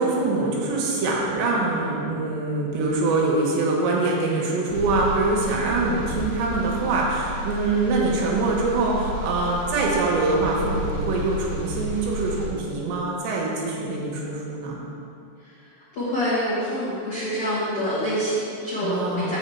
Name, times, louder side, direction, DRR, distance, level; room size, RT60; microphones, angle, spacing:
voice 1, 0.0-14.8 18.8-19.4, right 3 dB, 75° right, -2 dB, 3.2 m, -24 dB
sound 1, 4.7-12.5, equal, 55° left, 3.6 m, -32 dB
voice 2, 15.4-19.4, equal, 75° left, -11 dB, 1.3 m, -27 dB
7.2 x 7.1 x 4.4 m, 2.5 s
omnidirectional pair, 5.4 m